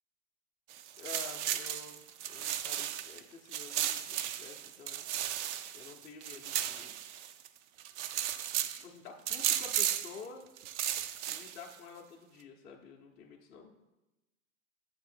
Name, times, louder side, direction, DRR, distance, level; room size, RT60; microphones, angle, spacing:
sound 1, 0.7-3.2 3.5-7.5 7.8-8.8 9.3-10.2 10.6-11.7, right 11 dB, 50° right, 0.5 m, -35 dB
voice 1, 0.9-5.0 5.7-7.0 8.6-10.4 11.3-13.7, left 5 dB, 20° left, 0 dB, 0.6 m, -50 dB
7.3 x 3.8 x 4.3 m, 0.98 s
hypercardioid pair, 100°, 46 cm